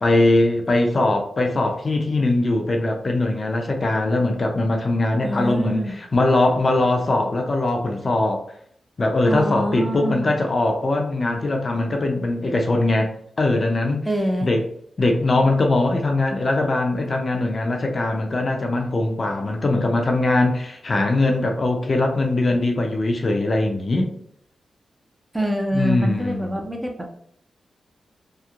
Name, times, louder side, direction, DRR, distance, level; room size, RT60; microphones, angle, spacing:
voice 1, 0.0-8.4 9.0-13.1 13.4-14.1 14.4-14.6 15.0-24.1 25.7-26.5, left 2 dB, 45° left, 3 dB, 0.5 m, -21 dB
voice 2, 5.2-5.9 9.2-10.3 14.1-14.5 25.3-27.1, equal, 10° right, 2 dB, 0.4 m, -25 dB
2.9 x 2.0 x 2.4 m, 0.66 s
cardioid pair, 80°, 0 cm